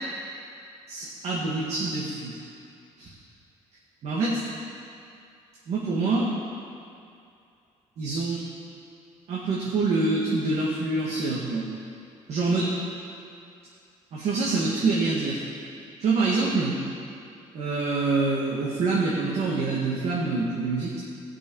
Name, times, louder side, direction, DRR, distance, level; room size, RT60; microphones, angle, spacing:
voice 1, 0.9-2.3 3.0-3.1 4.0-4.4 5.7-6.3 8.0-8.4 9.3-11.7 12.3-12.8 14.1-15.4 16.0-16.8 17.5-21.0, right 3 dB, 60° right, -6 dB, 2.0 m, -26 dB
17.0 x 6.2 x 5.5 m, 2.5 s
cardioid pair, 130°, 12 cm